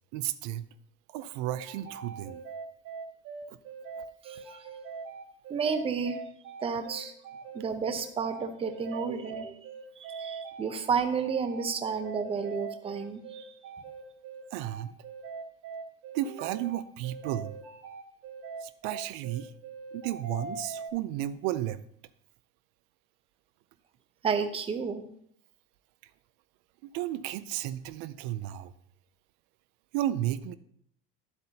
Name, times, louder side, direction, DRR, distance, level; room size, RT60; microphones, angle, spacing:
voice 1, 0.1-0.7 1.1-2.4 8.9-9.2 14.5-14.9 16.1-17.6 18.6-19.5 19.9-21.8 26.8-28.7 29.9-30.5, right 13 dB, 80° right, 14 dB, 0.6 m, -33 dB
sound 1, 1.5-20.9, right 5 dB, 55° right, 2.2 m, -42 dB
voice 2, 4.2-4.6 5.5-6.2 6.6-7.1 7.5-9.5 10.1-13.5 24.2-25.1, right 5 dB, 15° right, 8 dB, 0.6 m, -31 dB
11.0 x 8.1 x 2.8 m, 0.66 s
cardioid pair, 155°, 34 cm